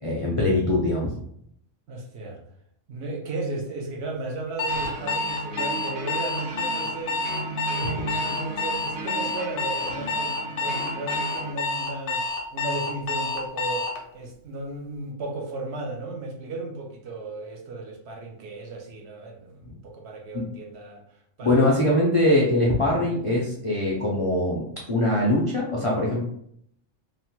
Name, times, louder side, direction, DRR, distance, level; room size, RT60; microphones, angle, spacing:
voice 1, 0.0-1.1 20.3-20.5 21.4-26.2, left 1 dB, 50° left, -4 dB, 0.3 m, -22 dB
voice 2, 1.9-2.4 2.9-12.2 12.5-21.0 21.4-21.8, right 2 dB, 65° right, 1 dB, 0.8 m, -35 dB
Alarm, 4.6-14.0, left 3 dB, 80° left, 0.9 m, -28 dB
sound 1, 4.7-11.5, right 2 dB, 85° right, 1.1 m, -38 dB
3.0 x 2.1 x 2.8 m, 0.70 s
omnidirectional pair, 1.3 m